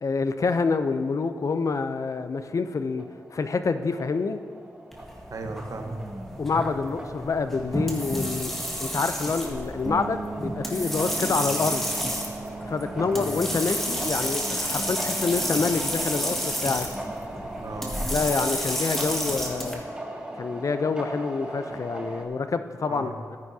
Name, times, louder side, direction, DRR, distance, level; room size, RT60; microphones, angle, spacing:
voice 1, 0.0-3.0 3.3-4.4 6.4-8.5 8.8-11.9 12.6-16.9 18.1-19.8 20.4-23.4, left 4 dB, 55° left, 10 dB, 0.6 m, -27 dB
sound 1, 2.8-22.2, right 1 dB, 15° right, 1.4 m, -39 dB
sound 2, 4.9-19.7, equal, 5° left, 1.9 m, -31 dB
voice 2, 5.3-6.0 11.2-11.6 13.0-13.3 17.6-18.0 22.9-23.2, right 3 dB, 60° right, 4 dB, 1.2 m, -37 dB
sound 3, 9.8-19.4, right 4 dB, 35° right, 0.8 m, -41 dB
14.0 x 9.6 x 2.8 m, 2.2 s
cardioid pair, 65°, 7 cm